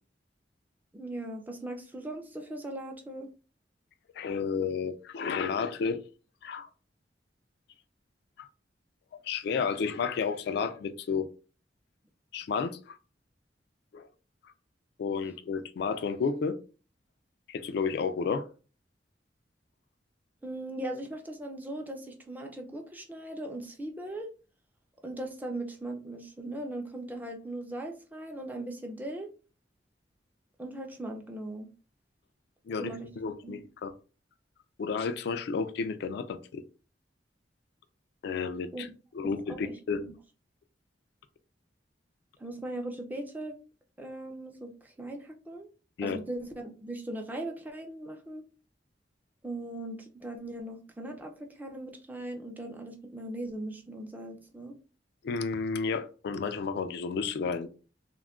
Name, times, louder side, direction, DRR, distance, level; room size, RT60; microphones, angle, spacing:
voice 1, 0.9-3.3 20.4-24.3 25.0-29.3 30.6-31.7 32.8-33.1 33.4-33.6 38.7-38.9 39.2-40.1 42.4-43.5 44.0-45.7 46.0-48.4 49.4-54.7, right 1 dB, 10° right, 0.4 m, -39 dB
voice 2, 4.2-6.0 6.4-6.7 8.4-8.5 9.2-11.3 12.3-13.0 13.9-14.1 14.4-14.5 15.0-16.6 17.5-18.5 32.7-33.9 34.8-36.6 38.2-38.9 39.1-40.1 46.0-46.2 55.2-57.7, left 5 dB, 65° left, 0.3 m, -32 dB
2.3 x 2.1 x 3.5 m
head